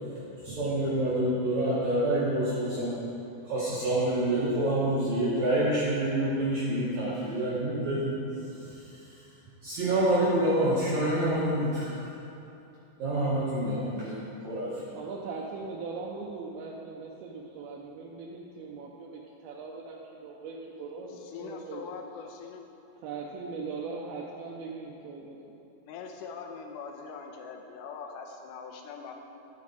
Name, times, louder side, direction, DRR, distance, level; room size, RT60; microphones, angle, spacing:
voice 1, 0.4-2.9 3.4-8.1 8.5-9.2 9.6-12.0 13.0-15.0, right 1 dB, 55° right, -9 dB, 2.5 m, -27 dB
voice 2, 14.9-21.1 21.4-21.8 23.0-25.6, right 4 dB, 85° right, -2 dB, 2.6 m, -40 dB
voice 3, 21.1-22.6 25.8-29.1, left 5 dB, 75° left, 3 dB, 2.1 m, -42 dB
12.5 x 7.6 x 4.3 m, 2.8 s
omnidirectional pair, 4.3 m